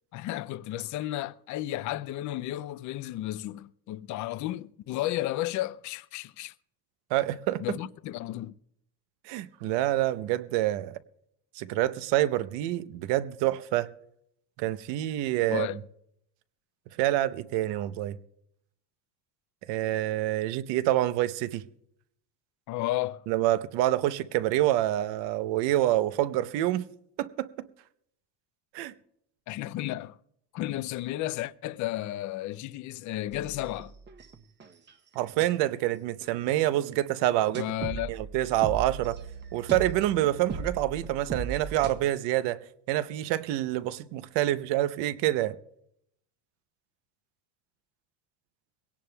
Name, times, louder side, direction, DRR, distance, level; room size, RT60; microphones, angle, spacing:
voice 1, 0.1-6.5 7.6-8.6 15.5-15.8 22.7-23.2 29.5-30.2 30.5-33.9 37.5-38.1, left 15 dB, 45° left, 0.4 m, -33 dB
voice 2, 7.1-7.6 9.3-11.0 11.6-13.9 14.6-15.7 17.0-18.2 19.7-21.6 23.3-26.9 27.2-27.7 28.7-28.9 35.2-37.6 38.1-39.2 39.5-42.6 42.9-45.6, right 14 dB, 75° right, 0.8 m, -27 dB
sound 1, 33.3-35.5 35.9-36.8 37.3-42.0, right 5 dB, 25° right, 0.8 m, -38 dB
22.5 x 17.5 x 2.3 m
cardioid pair, 145°, 43 cm